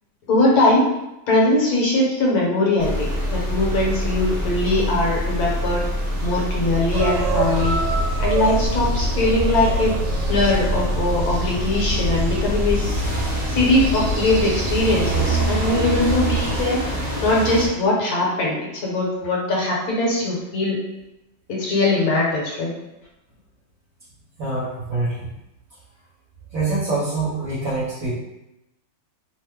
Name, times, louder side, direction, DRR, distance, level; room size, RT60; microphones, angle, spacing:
voice 1, 0.3-0.8 1.3-5.8 6.2-7.8 8.2-10.0 10.3-13.0 13.5-16.8 17.2-20.8 21.5-22.7, left 2 dB, 65° left, -3 dB, 1.2 m, -21 dB
sound 1, 2.8-17.7, equal, 20° right, 0.4 m, -25 dB
sound 2, 6.9-16.6, right 1 dB, 80° right, 1.2 m, -27 dB
voice 2, 24.4-25.3 26.5-28.1, right 3 dB, 55° right, -9 dB, 1.1 m, -25 dB
3.0 x 2.1 x 3.4 m, 0.90 s
omnidirectional pair, 1.9 m